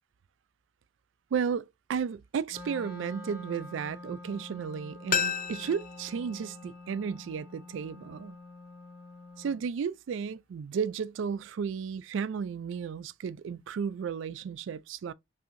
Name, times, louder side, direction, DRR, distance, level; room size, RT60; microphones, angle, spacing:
voice 1, 1.3-8.4 9.4-15.1, right 6 dB, 85° right, 0.3 m, -33 dB
Wind instrument woodwind instrument, 2.5-9.7, left 2 dB, 30° left, 2.3 m, -47 dB
sound 1, 5.1-7.9 8.2-8.3, left 7 dB, 45° left, 0.4 m, -34 dB
5.6 x 2.7 x 2.6 m
head